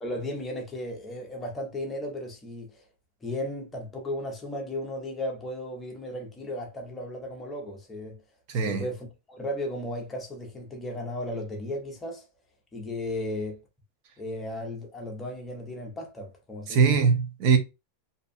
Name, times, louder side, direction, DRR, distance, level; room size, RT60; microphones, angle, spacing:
voice 1, 0.0-2.9 3.2-8.2 8.6-12.3 12.7-13.6 14.2-16.8, left 1 dB, 15° left, 0.7 m, -35 dB
voice 2, 8.5-8.9 16.7-17.6, right 5 dB, 50° right, 0.7 m, -21 dB
2.6 x 2.2 x 2.5 m
supercardioid pair, 150°, 0 cm